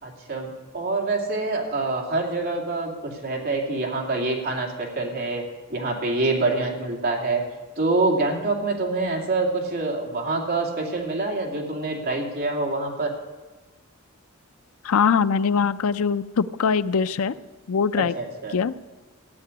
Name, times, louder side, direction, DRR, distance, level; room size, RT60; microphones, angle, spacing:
voice 1, 0.0-5.4 5.7-7.4 7.8-13.1 18.0-18.6, right 3 dB, 45° right, 0 dB, 2.5 m, -26 dB
voice 2, 14.8-17.3 17.7-18.1 18.5-18.7, left 6 dB, 70° left, 15 dB, 0.5 m, -22 dB
15.0 x 6.8 x 9.6 m, 1.2 s
head